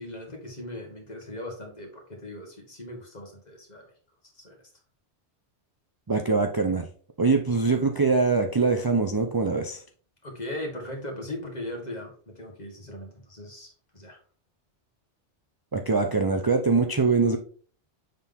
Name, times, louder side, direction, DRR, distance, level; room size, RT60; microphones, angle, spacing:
voice 1, 0.0-3.9 4.3-4.7 10.2-14.2, left 1 dB, 40° left, 1 dB, 1.7 m, -39 dB
voice 2, 6.1-6.9 7.2-9.8 15.7-17.4, right 4 dB, 30° right, 3 dB, 0.4 m, -23 dB
6.9 x 3.9 x 3.6 m, 0.42 s
omnidirectional pair, 1.2 m